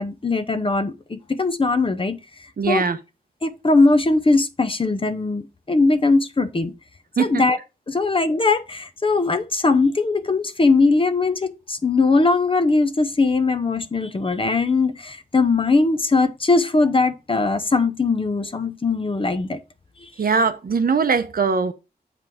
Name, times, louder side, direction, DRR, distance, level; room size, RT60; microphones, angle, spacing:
voice 1, 0.0-2.2 2.7-2.9 3.4-6.7 7.2-7.6 7.9-19.6, left 3 dB, 35° left, 0.8 m, -20 dB
voice 2, 2.6-3.0 7.2-7.4 20.2-21.7, right 5 dB, 65° right, 0.8 m, -21 dB
7.7 x 5.0 x 3.5 m
wide cardioid pair, 120°, 16 cm